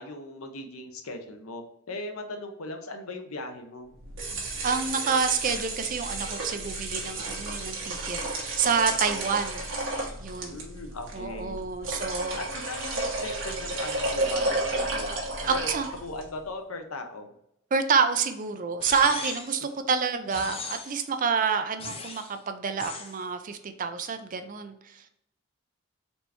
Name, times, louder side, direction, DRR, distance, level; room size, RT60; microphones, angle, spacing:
voice 1, 0.0-3.9 10.4-11.6 11.9-12.0 12.3-15.1 15.5-15.7 16.0-17.3 19.6-19.7, left 2 dB, 90° left, 5 dB, 0.8 m, -38 dB
sound 1, 4.0-16.3, right 2 dB, 60° right, 1.3 m, -32 dB
voice 2, 4.6-9.6 10.2-10.6 11.1-12.4 15.5-15.9 17.7-25.1, right 5 dB, 40° right, 8 dB, 0.4 m, -28 dB
sound 2, 18.8-19.6 20.3-21.1 21.8-22.3 22.8-23.2, left 4 dB, 25° left, 0.5 m, -37 dB
4.3 x 3.3 x 2.9 m, 0.78 s
head